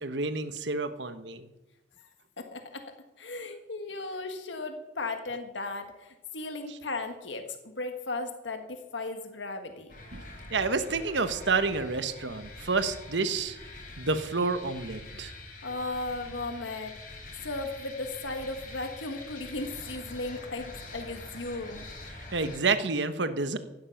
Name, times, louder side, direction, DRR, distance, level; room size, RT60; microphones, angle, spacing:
voice 1, 0.0-1.5 6.7-6.8 10.1-13.6 14.0-15.3 22.3-23.6, right 4 dB, 70° right, 10 dB, 1.2 m, -29 dB
voice 2, 2.4-2.8 3.2-9.9 15.6-17.0 17.4-21.8, left 2 dB, 80° left, 6 dB, 1.5 m, -36 dB
sound 1, 9.9-22.6, left 2 dB, 50° left, 3.6 m, -45 dB
16.0 x 12.0 x 5.8 m, 1.0 s
head